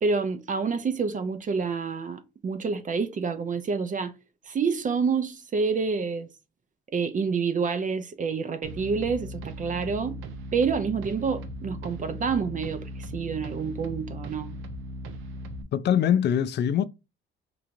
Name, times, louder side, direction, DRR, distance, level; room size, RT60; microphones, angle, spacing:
voice 1, 0.0-4.1 4.5-6.3 6.9-10.2 10.5-14.5, right 5 dB, 40° right, 0.6 m, -28 dB
sound 1, 8.6-15.6, equal, 85° right, 0.7 m, -38 dB
voice 2, 15.7-16.8, left 9 dB, 60° left, 0.4 m, -23 dB
4.6 x 2.9 x 2.5 m
cardioid pair, 90°, 20 cm